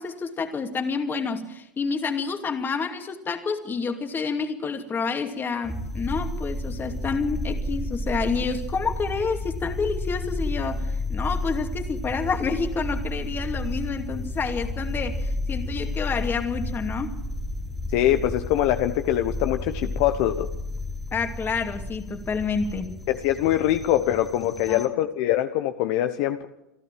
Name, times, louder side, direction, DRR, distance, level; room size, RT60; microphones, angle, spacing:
voice 1, 0.0-17.1 21.1-22.9 24.7-24.9, left 5 dB, 20° left, 6 dB, 2.5 m, -29 dB
sound 1, 5.6-24.9, left 1 dB, ahead, 1.8 m, -32 dB
voice 2, 17.9-20.5 23.1-26.5, left 13 dB, 50° left, 9 dB, 1.1 m, -23 dB
28.0 x 12.0 x 7.6 m, 0.91 s
hypercardioid pair, 125°, 10 cm